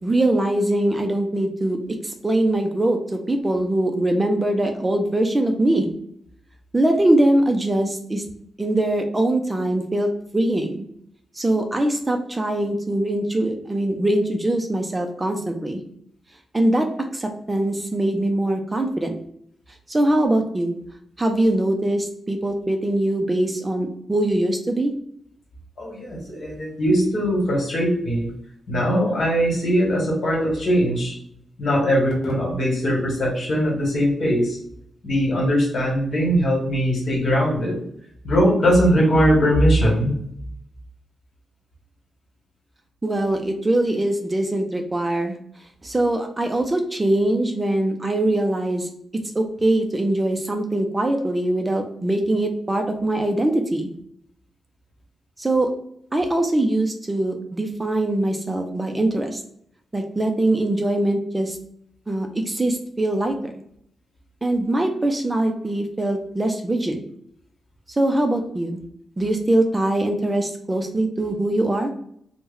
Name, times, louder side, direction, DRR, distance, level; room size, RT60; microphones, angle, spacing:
voice 1, 0.0-1.8 2.0-5.9 6.7-8.2 8.6-10.8 11.3-15.8 16.5-19.2 19.9-20.8 21.2-24.9 43.0-45.4 45.8-48.9 49.3-53.9 55.4-55.7 56.1-59.4 59.9-61.6 62.1-63.5 64.4-67.0 67.9-68.8 69.2-71.9, right 1 dB, 20° right, 4 dB, 0.4 m, -22 dB
voice 2, 25.8-28.3 28.7-31.2 31.6-34.6 35.0-37.8 38.2-40.1, equal, 55° left, -2 dB, 1.3 m, -20 dB
3.0 x 2.0 x 3.6 m, 0.69 s
wide cardioid pair, 115°, 0 cm